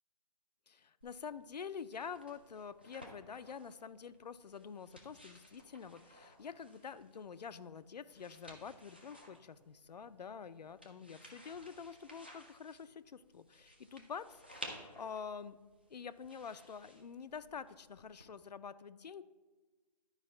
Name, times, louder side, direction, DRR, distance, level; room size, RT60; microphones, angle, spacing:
voice 1, 0.7-15.6 15.9-19.2, left 6 dB, 75° left, 14 dB, 0.5 m, -47 dB
sound 1, 1.0-18.2, equal, 15° right, 0.3 m, -56 dB
10.5 x 4.8 x 4.3 m, 1.3 s
figure-of-eight pair, 165°, 21 cm